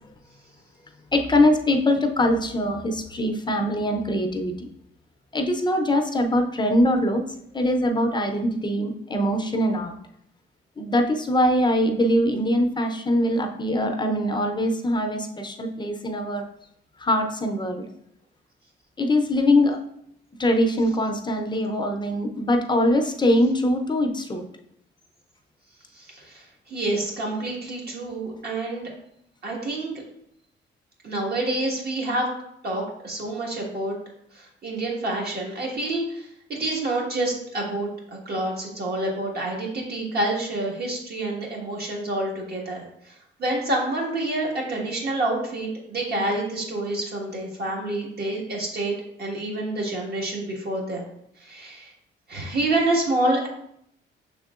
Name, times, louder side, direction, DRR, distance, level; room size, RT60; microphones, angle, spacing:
voice 1, 1.1-4.7 5.3-7.2 7.5-9.9 10.8-16.4 17.0-17.9 19.0-19.8 20.4-24.4, left 1 dB, 20° left, 4 dB, 0.6 m, -22 dB
voice 2, 25.9-28.9 29.4-29.9 31.0-32.3 32.6-33.9 34.3-37.9 38.2-51.0 51.4-51.9 52.3-53.5, right 2 dB, 55° right, -2 dB, 1.5 m, -28 dB
6.1 x 3.6 x 2.4 m, 0.74 s
cardioid pair, 90°, 20 cm